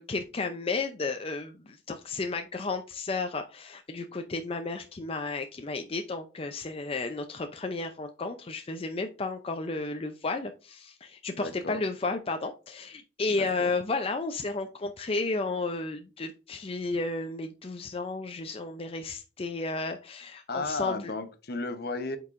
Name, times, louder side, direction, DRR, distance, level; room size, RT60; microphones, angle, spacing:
voice 1, 0.0-21.1, left 3 dB, 30° left, 6 dB, 0.5 m, -33 dB
voice 2, 11.3-11.8 13.3-13.7 20.5-22.2, left 3 dB, 60° left, 9 dB, 1.0 m, -34 dB
8.3 x 4.7 x 2.5 m, 0.33 s
head